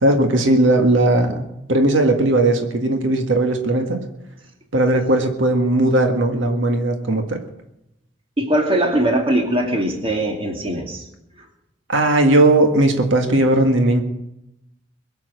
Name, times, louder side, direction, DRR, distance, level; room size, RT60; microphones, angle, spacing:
voice 1, 0.0-4.0 4.7-7.4 11.9-14.0, right 1 dB, 80° right, 4 dB, 1.7 m, -17 dB
voice 2, 8.4-11.0, right 1 dB, 30° right, 2 dB, 2.3 m, -20 dB
22.0 x 7.7 x 7.8 m, 0.86 s
head